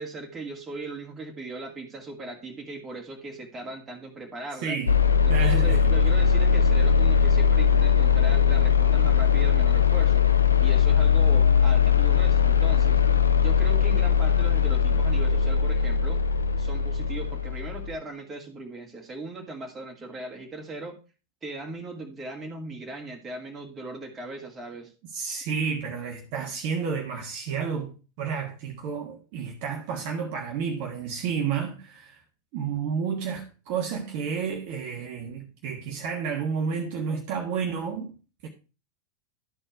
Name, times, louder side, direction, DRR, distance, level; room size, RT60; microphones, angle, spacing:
voice 1, 0.0-4.7 5.2-10.3 10.6-16.2 16.6-21.0 21.4-24.9, right 2 dB, 20° right, 2.4 m, -39 dB
voice 2, 4.6-4.9 5.3-6.0 25.1-32.2 32.5-38.1 38.4-38.5, right 6 dB, 45° right, 1.4 m, -31 dB
sound 1, 4.9-17.9, left 7 dB, 75° left, 0.6 m, -20 dB
12.5 x 4.4 x 4.5 m
figure-of-eight pair, 90°, 0 cm